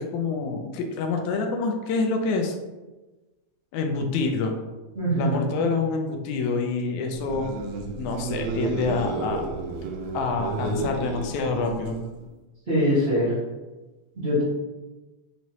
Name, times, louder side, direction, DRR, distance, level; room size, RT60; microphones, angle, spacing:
voice 1, 0.0-2.6 3.7-4.5 5.2-7.5 8.0-9.4 10.1-12.0, left 4 dB, 85° left, 4 dB, 2.0 m, -27 dB
voice 2, 4.9-5.4 12.7-13.3 14.2-14.4, equal, 35° right, -12 dB, 1.1 m, -22 dB
sound 1, 7.1-12.2, right 3 dB, 80° right, 1.8 m, -31 dB
5.4 x 3.0 x 2.8 m, 1.2 s
omnidirectional pair, 3.3 m